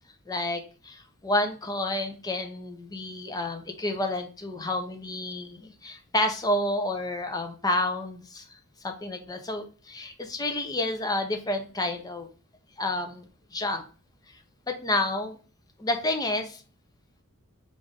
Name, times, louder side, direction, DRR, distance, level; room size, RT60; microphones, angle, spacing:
voice 1, 0.3-8.4 8.8-12.3 12.8-13.3 13.5-13.8 14.7-15.4 15.8-16.6, left 1 dB, 15° left, 5 dB, 0.6 m, -29 dB
3.7 x 2.5 x 3.4 m, 0.38 s
head